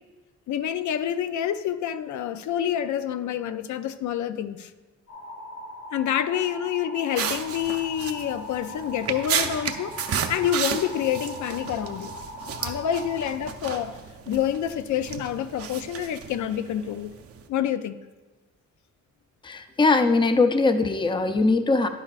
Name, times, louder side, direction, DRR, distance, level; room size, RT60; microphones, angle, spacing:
voice 1, 0.5-4.7 5.9-12.2 12.6-14.0 14.3-17.1 17.5-18.0, left 10 dB, 75° left, 0.5 m, -28 dB
sound 1, 5.1-13.2, left 1 dB, 55° left, 2.6 m, -40 dB
sound 2, 7.2-17.5, right 7 dB, 50° right, 0.7 m, -33 dB
voice 2, 19.4-21.9, left 3 dB, 15° left, 0.5 m, -21 dB
11.0 x 10.0 x 2.4 m
cardioid pair, 120°, 30 cm